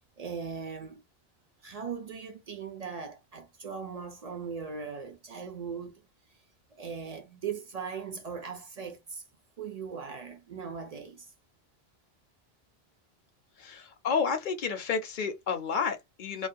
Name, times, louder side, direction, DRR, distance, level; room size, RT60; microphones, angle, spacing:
voice 1, 0.2-1.0 1.6-6.0 6.7-9.2 9.6-11.3, right 6 dB, 55° right, 0.5 m, -39 dB
voice 2, 13.6-16.5, left 6 dB, 55° left, 0.7 m, -30 dB
2.4 x 2.1 x 2.5 m
omnidirectional pair, 1.0 m